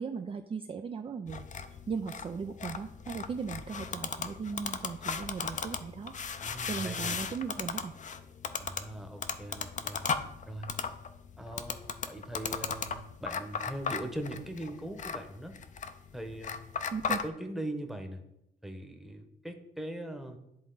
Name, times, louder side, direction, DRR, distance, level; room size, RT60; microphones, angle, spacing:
voice 1, 0.0-8.0 16.9-17.2, right 5 dB, 30° right, 7 dB, 0.4 m, -38 dB
sound 1, 1.3-17.3, left 6 dB, 40° left, 0.5 m, -37 dB
voice 2, 6.4-7.2 8.6-10.1 10.5-10.8 11.4-15.6 16.1-16.7 17.1-18.2 18.6-20.4, right 1 dB, ahead, 5 dB, 1.0 m, -40 dB
10.5 x 3.6 x 3.9 m, 0.85 s
cardioid pair, 90°, 20 cm